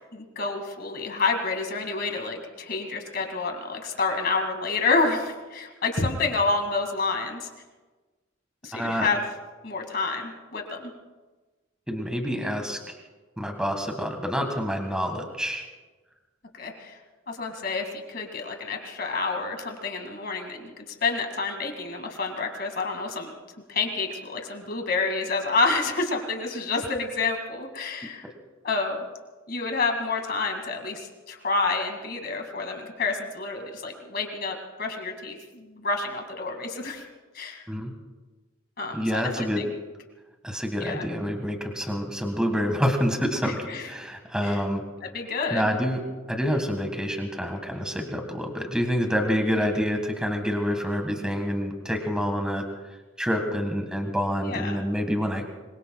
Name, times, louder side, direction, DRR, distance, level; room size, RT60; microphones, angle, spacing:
voice 1, 0.1-7.5 8.6-9.2 9.6-10.9 16.5-17.0 17.3-23.3 23.7-28.2 28.6-29.0 29.5-37.0 37.3-37.7 38.8-39.7 40.8-41.1 43.4-43.9 44.4-44.6 45.0-45.7 49.6-49.7 54.4-54.8, left 3 dB, 45° left, 4 dB, 2.2 m, -29 dB
voice 2, 8.7-9.1 11.9-12.8 13.4-15.6 28.2-28.3 37.7-37.9 38.9-39.6 40.4-44.8 45.5-46.0 46.3-52.6 53.2-55.5, equal, 5° right, 4 dB, 1.7 m, -27 dB
26.0 x 22.0 x 2.3 m, 1.3 s
head